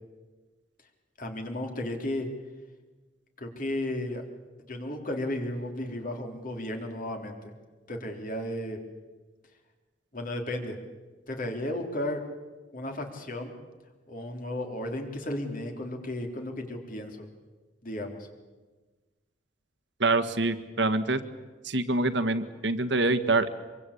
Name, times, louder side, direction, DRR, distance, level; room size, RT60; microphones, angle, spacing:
voice 1, 1.2-2.3 3.4-4.2 4.7-7.5 7.9-8.8 10.1-10.8 11.3-12.2 12.7-13.5 14.1-17.3 17.8-18.3, left 1 dB, 50° left, 3 dB, 3.9 m, -34 dB
voice 2, 20.0-21.2 21.6-23.5, right 2 dB, 75° right, 10 dB, 1.7 m, -25 dB
25.5 x 23.0 x 8.6 m, 1.3 s
head